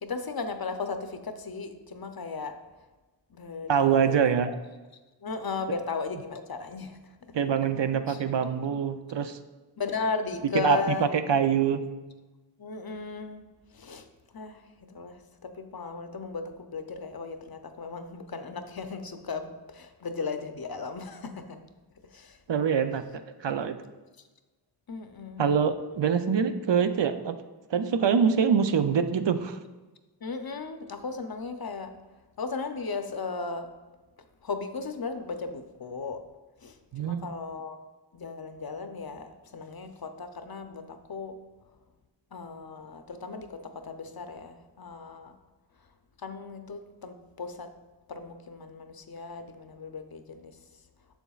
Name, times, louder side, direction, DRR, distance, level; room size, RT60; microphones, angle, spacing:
voice 1, 0.0-2.6 3.3-4.3 5.2-7.4 8.1-8.2 9.8-11.1 12.6-13.4 13.7-14.1 14.3-21.6 22.0-22.4 24.9-25.6 30.2-32.0 32.4-33.7 34.4-36.2 36.6-37.8 38.1-41.4 42.3-45.4 46.2-47.7 48.1-50.6, left 4 dB, 55° left, 7 dB, 0.6 m, -36 dB
voice 2, 3.7-4.5 7.3-9.4 10.5-10.8 11.1-11.9 22.5-23.0 23.4-23.8 25.4-27.4 27.7-29.6 36.9-37.3, right 7 dB, 75° right, 9 dB, 0.5 m, -24 dB
7.1 x 7.0 x 2.3 m, 1.2 s
wide cardioid pair, 40°, 43 cm